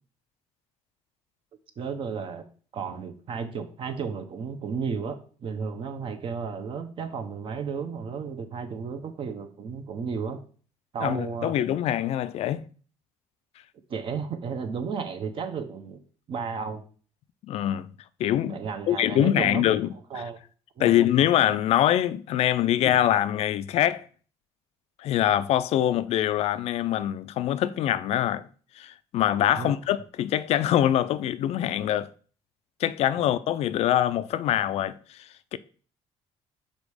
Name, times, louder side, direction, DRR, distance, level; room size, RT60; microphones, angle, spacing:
voice 1, 1.8-2.4 2.7-10.4 10.9-11.5 13.9-16.0 16.3-16.8 18.5-19.8 20.1-20.4 20.8-21.0 29.6-29.8, right 6 dB, 45° right, 0.9 m, -33 dB
voice 2, 11.0-12.7 17.5-17.9 18.2-18.6 18.9-20.2 20.8-24.1 25.0-28.5 28.7-32.1 32.8-35.6, left 11 dB, 60° left, 0.4 m, -24 dB
5.1 x 4.3 x 4.9 m
cardioid pair, 115°, 12 cm